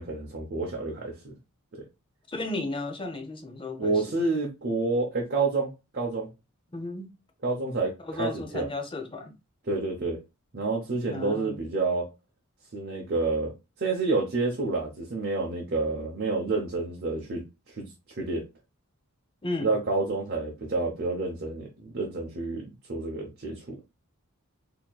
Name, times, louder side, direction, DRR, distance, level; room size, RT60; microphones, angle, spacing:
voice 1, 0.0-1.3 1.7-1.8 3.8-6.3 7.4-8.7 9.7-10.2 10.5-12.1 12.7-13.5 13.8-18.4 19.6-23.7, right 3 dB, 45° right, 0.7 m, -29 dB
voice 2, 2.3-4.2 6.7-7.1 8.0-9.3 11.1-11.6 19.4-19.7, left 2 dB, 25° left, 0.6 m, -34 dB
4.2 x 2.8 x 2.3 m
head